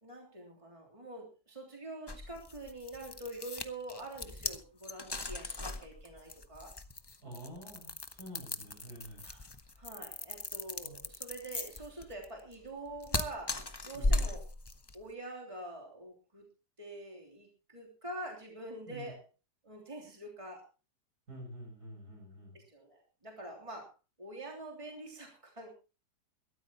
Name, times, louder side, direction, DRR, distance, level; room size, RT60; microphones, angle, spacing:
voice 1, 0.0-6.7 9.2-9.5 9.8-13.6 13.8-14.4 14.9-16.5 16.8-19.2 19.6-20.6 22.5-23.9 24.2-25.7, right 1 dB, 20° right, 0 dB, 3.3 m, -45 dB
sound 1, 2.1-15.0, left 2 dB, 20° left, 0.7 m, -37 dB
voice 2, 7.2-9.2 10.8-11.0 13.9-14.3 18.9-19.1 21.3-22.6, right 1 dB, 70° right, 2 dB, 7.4 m, -48 dB
22.5 x 13.0 x 2.9 m, 0.32 s
omnidirectional pair, 1.7 m